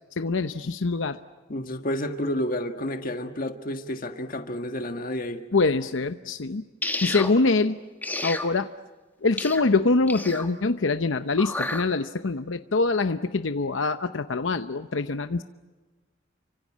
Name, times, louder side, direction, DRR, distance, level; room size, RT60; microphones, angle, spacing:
voice 1, 0.2-1.2 5.5-6.6 7.0-7.8 8.2-8.7 9.2-15.4, left 3 dB, 90° left, 0.8 m, -24 dB
voice 2, 1.5-5.4, left 1 dB, 50° left, 1.6 m, -30 dB
sound 1, 6.8-7.3 8.0-8.5 9.4-9.6 10.1-10.5 11.4-11.8, left 2 dB, 10° left, 1.7 m, -30 dB
29.5 x 25.0 x 7.4 m
head